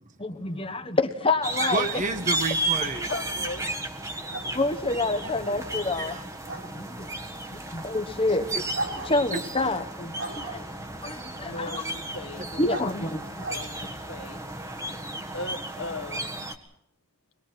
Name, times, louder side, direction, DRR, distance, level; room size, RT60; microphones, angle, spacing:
voice 1, 0.2-2.0 4.5-6.2 6.6-7.1 7.5-8.5 8.9-10.6 11.0-11.8 12.6-13.3, left 2 dB, 25° left, 9 dB, 1.2 m, -28 dB
sound 1, 1.4-16.6, right 1 dB, 15° right, 1.5 m, -34 dB
voice 2, 1.6-3.1 5.2-6.2 8.4-8.6 9.3-9.4, right 3 dB, 35° right, 7 dB, 1.4 m, -31 dB
sound 2, 2.0-14.5, right 2 dB, 60° right, 6.6 m, -41 dB
voice 3, 3.1-3.7 11.4-12.8 13.1-14.4 15.3-16.2, left 2 dB, 60° left, 7 dB, 1.6 m, -38 dB
24.0 x 21.0 x 6.0 m, 0.79 s
head